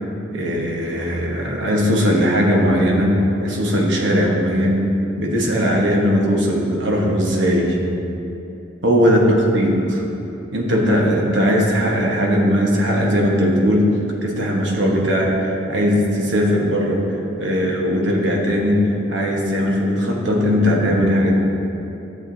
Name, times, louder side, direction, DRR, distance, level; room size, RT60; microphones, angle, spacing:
voice 1, 0.3-4.9 5.2-7.8 8.8-10.0 10.5-13.9 14.2-21.4, equal, 65° right, -1 dB, 1.2 m, -18 dB
11.5 x 7.3 x 2.7 m, 2.8 s
head